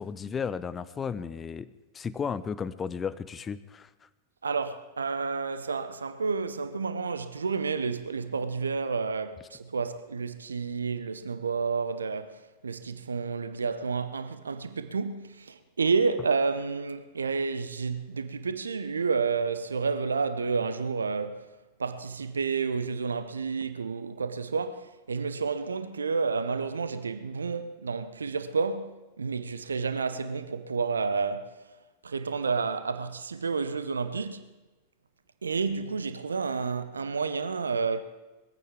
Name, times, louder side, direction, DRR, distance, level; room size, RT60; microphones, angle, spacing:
voice 1, 0.0-1.7 1.9-3.9, left 6 dB, 20° left, 0.7 m, -34 dB
voice 2, 4.4-21.4 21.8-31.6 32.0-34.5 35.4-38.0, right 5 dB, 75° right, 0.8 m, -30 dB
21.0 x 15.0 x 3.6 m
figure-of-eight pair, 90°, 0 cm